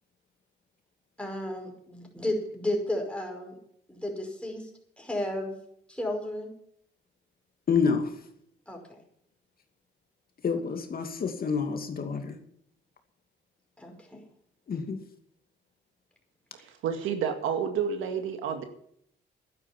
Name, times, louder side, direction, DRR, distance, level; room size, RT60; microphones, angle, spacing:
voice 1, 1.2-3.6 3.9-4.7 5.0-5.5 5.9-6.5 8.7-9.0 13.8-14.2, left 1 dB, 5° left, 1 dB, 5.4 m, -33 dB
voice 2, 7.7-8.1 10.4-12.4 14.7-15.0, left 5 dB, 50° left, 5 dB, 2.5 m, -28 dB
voice 3, 16.5-18.6, right 7 dB, 90° right, 7 dB, 2.1 m, -30 dB
12.0 x 10.5 x 7.3 m, 0.69 s
cardioid pair, 90°, 20 cm